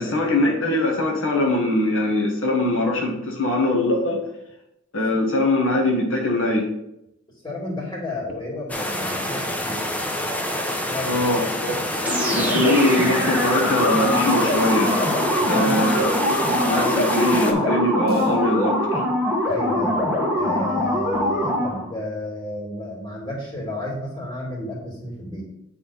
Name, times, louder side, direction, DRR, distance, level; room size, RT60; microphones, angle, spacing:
voice 1, 0.0-4.2 4.9-6.7 11.1-11.8 12.3-16.1 16.6-18.8, left 1 dB, 80° left, -1 dB, 1.4 m, -22 dB
voice 2, 7.4-10.3 10.8-11.1 15.3-16.1 19.4-25.4, left 1 dB, 25° left, -5 dB, 2.6 m, -32 dB
sound 1, 8.3-8.4 8.8-13.5 14.5-20.0 20.8-21.3, right 2 dB, 50° right, 0.9 m, -38 dB
sound 2, 8.7-17.5, left 1 dB, 10° left, 0.7 m, -27 dB
sound 3, 12.0-21.9, left 1 dB, 10° right, 1.3 m, -23 dB
8.7 x 3.6 x 4.2 m, 0.84 s
head